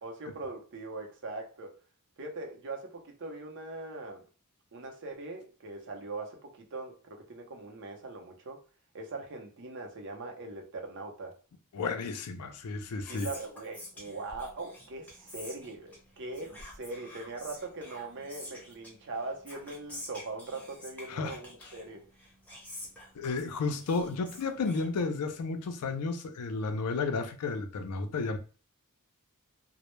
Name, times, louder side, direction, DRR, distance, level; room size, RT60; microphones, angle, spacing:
voice 1, 0.0-1.7 2.2-4.2 4.7-8.6 8.9-11.3 13.1-22.0, right 3 dB, 55° right, 0.6 m, -41 dB
voice 2, 11.7-13.3 21.1-21.3 23.2-28.4, left 4 dB, 85° left, 0.4 m, -32 dB
Whispering, 12.7-25.5, left 1 dB, 5° left, 0.6 m, -49 dB
2.1 x 2.1 x 3.0 m
head